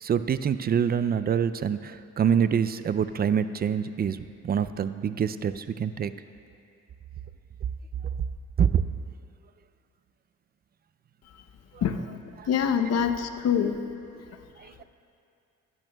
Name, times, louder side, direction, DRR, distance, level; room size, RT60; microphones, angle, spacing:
voice 1, 0.0-4.2 4.4-6.1 8.6-8.8 12.4-12.5 14.6-14.8, right 7 dB, 35° right, 13 dB, 0.4 m, -25 dB
voice 2, 12.5-13.8, left 8 dB, 55° left, 8 dB, 0.7 m, -24 dB
15.0 x 12.5 x 2.3 m, 2.6 s
cardioid pair, 90°, 30 cm